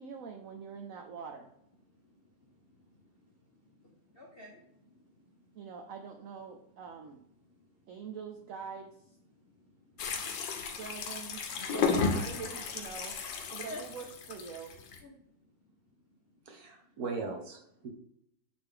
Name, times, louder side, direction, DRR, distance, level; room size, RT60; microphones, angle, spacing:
voice 1, 0.0-1.5 5.5-7.2 7.9-9.2 10.8-13.2 13.5-14.7, right 6 dB, 75° right, 4 dB, 0.7 m, -44 dB
voice 2, 1.9-5.7 6.7-6.8 7.4-8.1 9.3-10.8 11.5-12.3 13.7-13.8 15.0-17.0, left 1 dB, 45° left, -1 dB, 0.7 m, -53 dB
sound 1, 10.0-15.0, left 5 dB, 75° left, 1.5 m, -34 dB
voice 3, 16.5-17.9, right 4 dB, 55° right, 2 dB, 1.4 m, -39 dB
8.6 x 3.5 x 3.7 m, 0.75 s
omnidirectional pair, 2.0 m